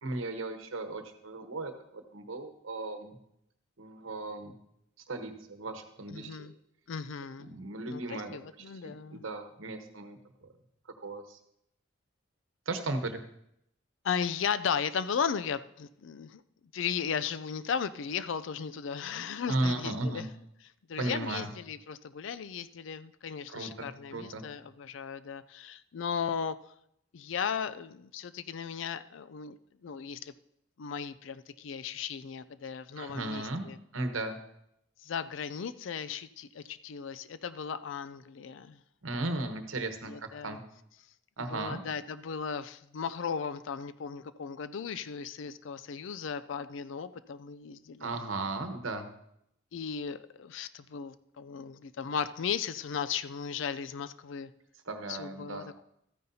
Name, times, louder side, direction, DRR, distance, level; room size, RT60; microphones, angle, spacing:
voice 1, 0.0-3.2 3.8-4.5 5.1-6.5 7.4-10.5 11.0-11.4 12.7-13.2 19.5-20.3 21.0-21.5 23.5-24.4 33.0-33.6 33.9-34.4 39.0-40.6 41.4-41.8 48.0-49.1 54.9-55.8, right 2 dB, 85° right, 7 dB, 1.1 m, -36 dB
voice 2, 6.1-6.5 6.9-7.5 7.9-9.3 14.0-16.4 16.7-20.2 20.9-26.6 27.1-29.6 29.8-30.3 30.8-33.8 35.0-38.8 40.1-40.6 41.4-48.1 49.7-54.5 55.1-55.8, left 6 dB, 70° left, 14 dB, 0.4 m, -36 dB
13.5 x 9.4 x 2.8 m, 0.77 s
head